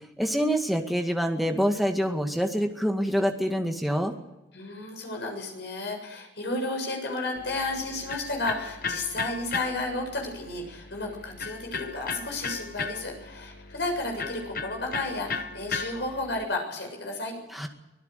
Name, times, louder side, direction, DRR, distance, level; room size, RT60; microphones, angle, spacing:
voice 1, 0.2-4.1 17.5-17.7, equal, ahead, 3 dB, 2.0 m, -26 dB
voice 2, 4.5-17.4, left 2 dB, 65° left, 2 dB, 7.2 m, -32 dB
Electric guitar, 7.4-16.4, left 4 dB, 50° left, 1.0 m, -36 dB
25.0 x 17.0 x 6.7 m, 1.0 s
head